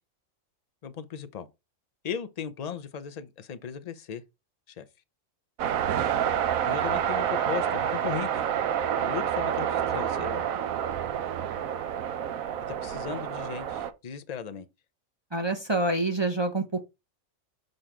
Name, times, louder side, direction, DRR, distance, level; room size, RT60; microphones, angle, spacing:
voice 1, 0.8-1.5 2.0-4.2 4.7-4.8 6.7-8.5 9.0-10.5 12.8-14.7, left 7 dB, 45° left, 0.5 m, -37 dB
sound 1, 5.6-13.9, right 9 dB, 90° right, 1.1 m, -28 dB
voice 2, 15.3-16.8, right 2 dB, 30° right, 0.6 m, -27 dB
6.5 x 3.8 x 4.4 m
omnidirectional pair, 1.4 m